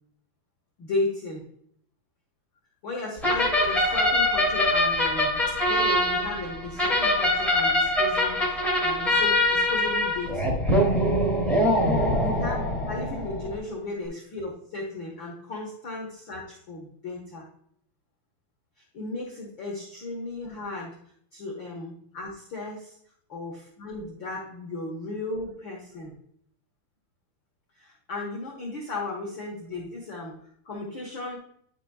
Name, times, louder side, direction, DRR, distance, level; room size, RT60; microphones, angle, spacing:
voice 1, 0.8-1.5 2.8-10.6 12.1-12.6 12.8-17.5 18.8-20.9 21.3-22.9 23.3-26.1 27.8-31.4, left 2 dB, 90° left, -2 dB, 1.0 m, -35 dB
sound 1, 3.2-13.6, left 1 dB, ahead, 1.1 m, -23 dB
10.0 x 5.9 x 2.3 m, 0.66 s
omnidirectional pair, 4.2 m